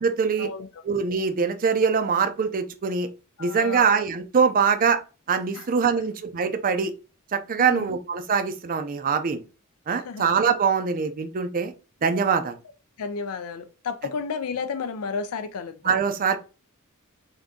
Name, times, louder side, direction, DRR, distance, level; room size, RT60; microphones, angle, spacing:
voice 1, 0.0-0.5 0.8-3.1 3.4-5.0 5.3-6.9 7.3-9.4 9.9-11.7 12.0-12.5 15.8-16.4, right 6 dB, 40° right, 0.4 m, -23 dB
voice 2, 3.4-3.9 5.5-5.7 7.6-7.9 9.9-10.2 13.0-15.9, left 5 dB, 70° left, 0.4 m, -32 dB
3.5 x 2.7 x 3.7 m
head